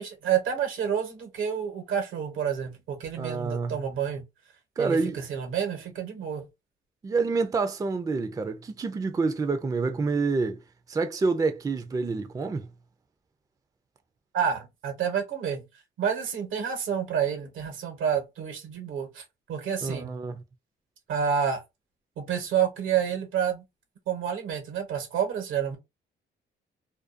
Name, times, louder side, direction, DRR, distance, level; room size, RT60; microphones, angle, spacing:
voice 1, 0.0-4.2 4.8-6.4 14.3-15.6 16.0-19.2 19.5-20.1 21.1-21.6 22.2-23.6 24.1-25.8, right 8 dB, 85° right, 1.0 m, -29 dB
voice 2, 3.2-3.8 4.8-5.2 7.0-10.6 10.9-12.7 19.8-20.4, right 4 dB, 20° right, 0.4 m, -27 dB
2.5 x 2.2 x 2.4 m
cardioid pair, 90°, 20 cm